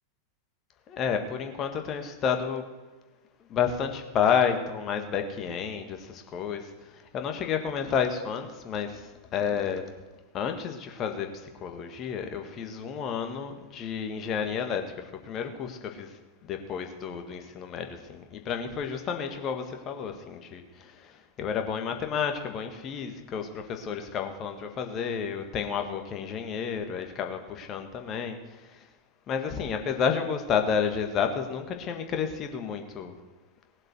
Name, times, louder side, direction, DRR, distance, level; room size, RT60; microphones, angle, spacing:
voice 1, 0.9-2.7 3.5-6.7 7.1-9.9 10.3-16.1 16.4-28.4 28.7-28.8 29.3-33.1, left 7 dB, 30° left, 5 dB, 1.7 m, -31 dB
19.0 x 7.4 x 6.3 m, 1.2 s
figure-of-eight pair, 90°, 0 cm